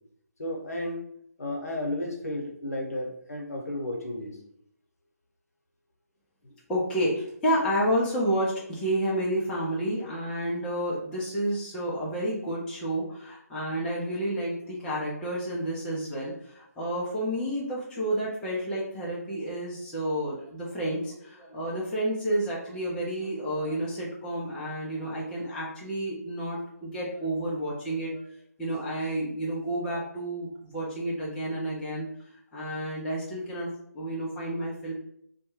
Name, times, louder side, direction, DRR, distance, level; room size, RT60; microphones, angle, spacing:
voice 1, 0.4-1.0 1.4-4.4 6.4-6.5, left 1 dB, 65° left, 1 dB, 0.8 m, -33 dB
voice 2, 6.7-28.2 28.6-32.1 32.5-33.7 33.9-34.9, right 1 dB, 5° left, -7 dB, 0.4 m, -30 dB
2.1 x 2.1 x 3.0 m, 0.71 s
figure-of-eight pair, 145°, 9 cm